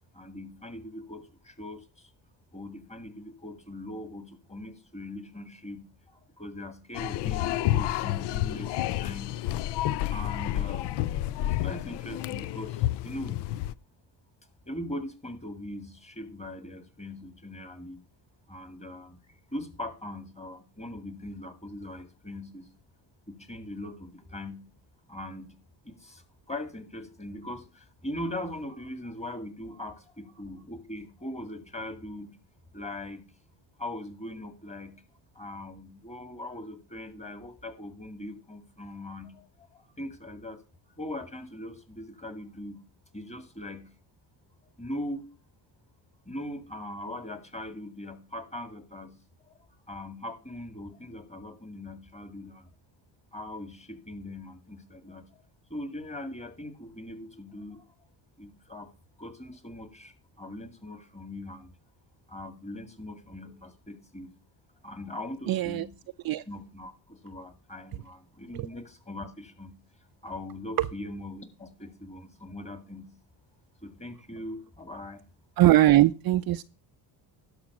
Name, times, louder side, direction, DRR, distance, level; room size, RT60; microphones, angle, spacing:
voice 1, 0.1-2.1 2.5-9.4 10.1-10.9 11.4-13.4 14.7-18.0 18.5-19.2 19.5-22.7 23.3-24.6 25.1-25.5 25.8-32.3 32.7-33.3 33.8-35.0 35.4-40.6 41.0-42.8 43.1-43.9 44.8-45.3 46.3-49.2 49.5-52.7 53.3-55.4 55.7-57.8 58.4-58.9 59.2-61.7 62.3-64.3 64.8-65.9 66.5-69.8 70.2-73.1 73.8-75.2, left 1 dB, 15° left, 10 dB, 2.0 m, -40 dB
sound 1, 6.9-13.7, left 14 dB, 60° left, 0.5 m, -30 dB
voice 2, 65.5-65.9 66.2-66.4 68.5-68.7 70.8-70.9 75.6-76.6, right 14 dB, 50° right, 12 dB, 0.6 m, -21 dB
11.5 x 6.2 x 6.0 m, 0.32 s
cardioid pair, 105°, 48 cm